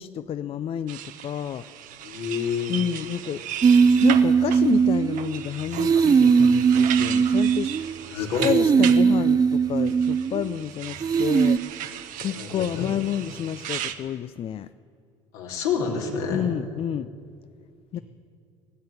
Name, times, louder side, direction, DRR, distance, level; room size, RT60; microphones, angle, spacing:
voice 1, 0.0-1.6 2.7-3.4 4.0-11.6 12.2-14.7 16.3-17.1 17.9-18.0, left 10 dB, 40° left, 13 dB, 0.4 m, -30 dB
sound 1, 0.9-9.0 9.9-14.0, right 11 dB, 65° right, 0.9 m, -36 dB
voice 2, 2.0-2.8 8.1-8.5 12.3-12.9 15.3-16.5 17.9-18.0, left 6 dB, 75° left, 0 dB, 2.8 m, -28 dB
sound 2, 3.6-5.4 5.7-8.0 8.4-10.6 11.0-11.6, right 6 dB, 25° right, 0.5 m, -19 dB
17.5 x 7.8 x 9.8 m, 2.3 s
hypercardioid pair, 75°, 15 cm